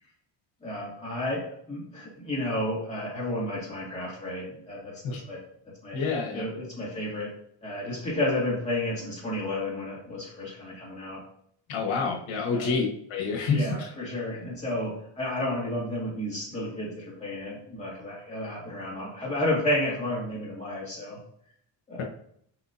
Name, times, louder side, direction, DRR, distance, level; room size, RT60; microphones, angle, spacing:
voice 1, 0.6-5.4 5.8-6.0 6.3-7.3 7.6-11.2 12.5-12.8 13.5-21.2 21.9-22.0, left 1 dB, 15° left, -6 dB, 2.5 m, -31 dB
voice 2, 5.9-6.4 11.7-13.9, left 4 dB, 80° left, 0 dB, 1.5 m, -28 dB
7.7 x 4.9 x 2.9 m, 0.67 s
cardioid pair, 170°, 46 cm